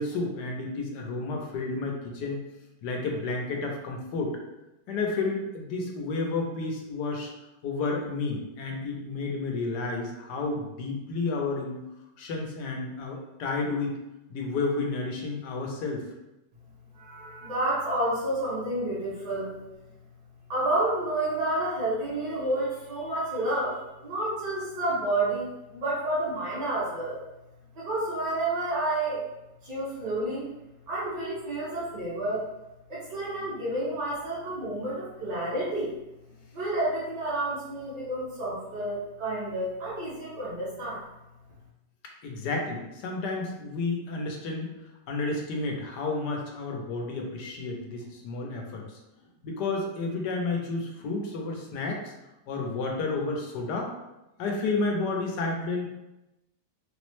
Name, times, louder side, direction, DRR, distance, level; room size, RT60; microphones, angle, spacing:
voice 1, 0.0-2.4 2.8-4.4 4.9-7.3 7.6-11.8 12.2-13.9 14.3-16.1 42.2-44.7 45.1-49.0 49.4-52.1 52.5-53.9 54.4-55.8, left 3 dB, 75° left, 1 dB, 1.2 m, -31 dB
voice 2, 16.9-19.6 20.5-27.2 27.7-29.2 29.6-30.5 30.9-32.4 32.9-35.9 36.5-41.0, right 1 dB, 90° right, -12 dB, 2.1 m, -30 dB
4.1 x 2.0 x 3.0 m, 0.94 s
omnidirectional pair, 1.8 m